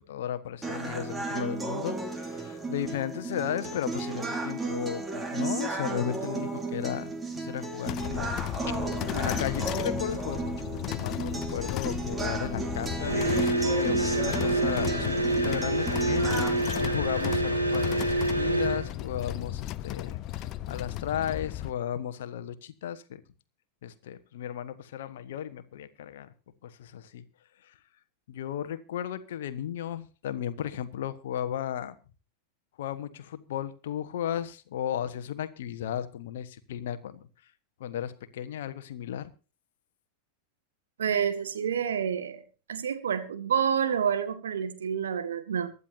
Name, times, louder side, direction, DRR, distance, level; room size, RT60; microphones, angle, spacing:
voice 1, 0.1-8.3 8.7-8.8 9.0-23.2 23.8-26.3 26.6-27.2 27.7-27.8 28.3-31.9 32.8-37.3 37.8-39.3, left 10 dB, 55° left, 11 dB, 1.3 m, -35 dB
sound 1, 0.6-16.6, right 3 dB, 15° right, 2.8 m, -34 dB
sound 2, 7.9-21.7, left 14 dB, 35° left, 0.6 m, -35 dB
sound 3, 13.0-18.9, right 2 dB, 90° right, 3.0 m, -27 dB
voice 2, 41.0-42.4 42.7-45.7, right 7 dB, 65° right, 9 dB, 1.8 m, -28 dB
24.0 x 11.0 x 2.8 m, 0.33 s
figure-of-eight pair, 90°, 0 cm